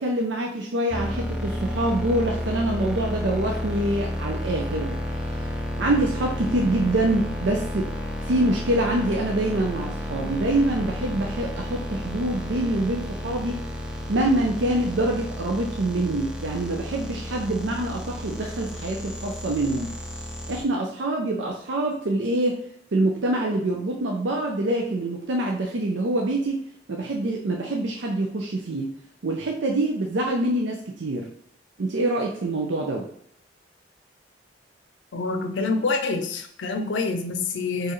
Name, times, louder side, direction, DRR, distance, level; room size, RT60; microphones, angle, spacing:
voice 1, 0.0-5.0 5.3-5.4 5.8-7.9 8.2-13.6 14.1-20.0 20.5-26.6 26.9-28.9 29.2-31.3 31.8-33.1, right 1 dB, 80° right, 1 dB, 0.6 m, -25 dB
sound 1, 0.9-20.6, equal, 5° right, 0.5 m, -32 dB
voice 2, 35.1-37.9, left 3 dB, 80° left, 6 dB, 0.5 m, -26 dB
4.5 x 3.2 x 3.1 m, 0.67 s
head